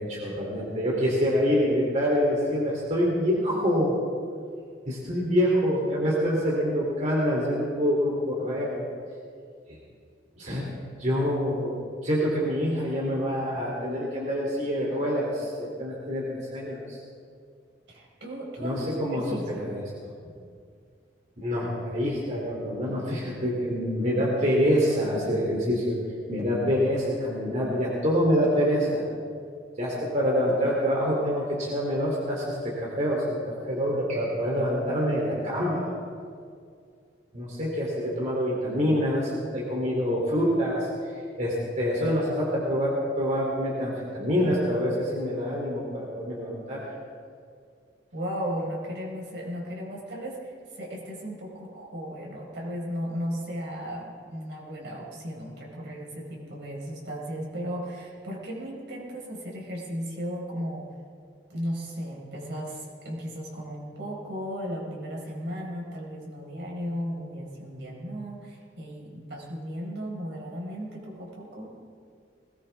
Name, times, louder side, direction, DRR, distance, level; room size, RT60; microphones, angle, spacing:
voice 1, 0.0-4.0 4.9-8.9 9.7-9.8 10.4-10.6 11.0-11.8 12.0-17.0 18.6-19.8 21.4-26.0 26.3-29.0 29.8-35.9 37.3-46.8, equal, 40° right, -4 dB, 3.1 m, -26 dB
voice 2, 17.9-19.7 48.1-60.8 61.5-71.7, equal, 70° right, -2 dB, 4.8 m, -35 dB
20.5 x 19.0 x 3.5 m, 2.2 s
head